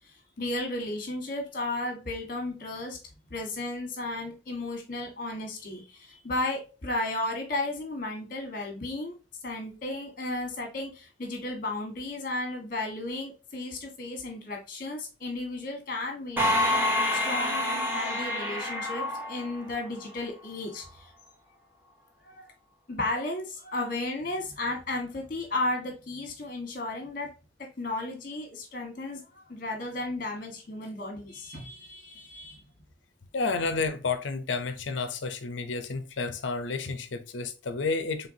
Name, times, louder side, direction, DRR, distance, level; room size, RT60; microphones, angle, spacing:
voice 1, 0.4-3.0 3.3-9.1 9.4-16.8 17.1-21.1 22.2-22.5 22.9-27.3 27.8-32.6, left 2 dB, 45° left, 1.3 m, -34 dB
sound 1, 16.4-20.0, left 1 dB, 10° right, 0.8 m, -27 dB
voice 2, 33.3-38.3, left 4 dB, 70° left, 0.6 m, -31 dB
4.4 x 3.3 x 2.7 m
head